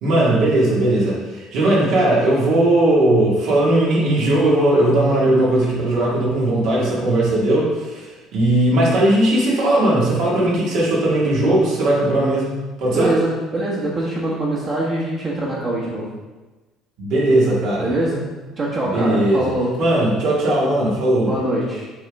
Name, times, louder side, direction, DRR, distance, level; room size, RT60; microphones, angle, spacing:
voice 1, 0.0-13.1 17.0-17.9 18.8-19.5 19.8-21.3, right 1 dB, 75° right, -5 dB, 2.1 m, -18 dB
voice 2, 12.9-16.1 17.8-18.2 18.6-19.7 21.2-21.9, right 1 dB, 35° right, -6 dB, 1.3 m, -23 dB
7.2 x 4.0 x 3.6 m, 1.2 s
cardioid pair, 130°, 0 cm